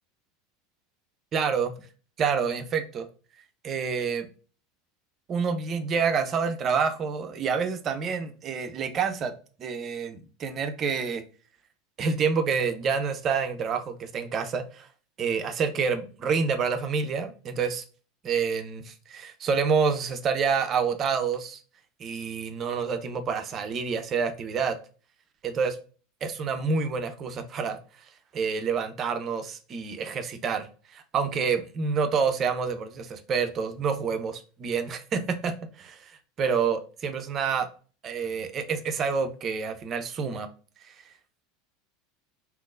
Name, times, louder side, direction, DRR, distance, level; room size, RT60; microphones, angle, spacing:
voice 1, 1.3-1.7 2.2-3.1 3.6-4.3 5.3-9.3 9.6-11.2 12.0-14.9 15.2-17.8 18.2-21.6 22.0-24.8 25.4-25.8 26.2-28.1 28.3-37.7 38.0-40.5 40.8-41.1, right 5 dB, 35° right, 0.5 m, -28 dB
3.6 x 2.8 x 2.4 m
figure-of-eight pair, 80°, 0 cm